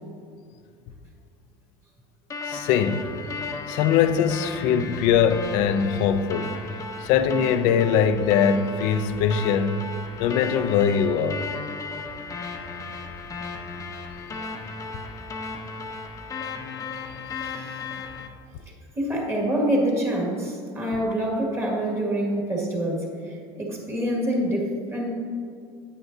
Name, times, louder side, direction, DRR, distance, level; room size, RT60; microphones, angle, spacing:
sound 1, 2.3-18.3, left 4 dB, 25° left, 0.8 m, -35 dB
voice 1, 2.5-3.1 3.4-6.6 7.0-9.9 10.2-11.5 14.3-14.5, left 7 dB, 65° left, 0.5 m, -22 dB
voice 2, 17.3-17.9 19.0-25.1, right 1 dB, 20° right, 2.0 m, -26 dB
9.4 x 8.2 x 2.7 m
supercardioid pair, 120°, 14 cm